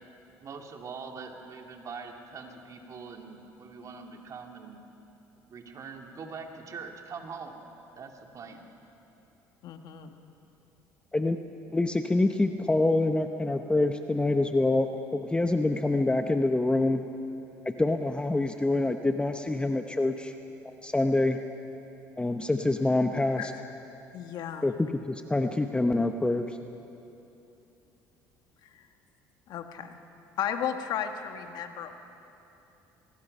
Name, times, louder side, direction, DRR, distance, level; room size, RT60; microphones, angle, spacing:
voice 1, 0.4-4.8 5.5-7.6 8.0-8.7, right 5 dB, 45° right, 3 dB, 2.5 m, -43 dB
voice 2, 9.6-10.1 23.4-23.5 24.1-24.7 28.6-28.9 29.5-30.0 30.4-32.0, left 9 dB, 65° left, 6 dB, 1.5 m, -34 dB
voice 3, 11.7-17.0 17.6-20.3 20.6-21.4 22.2-23.5 24.6-26.6, left 2 dB, 15° left, 7 dB, 0.9 m, -26 dB
23.0 x 20.5 x 5.5 m, 2.9 s
supercardioid pair, 75°, 8 cm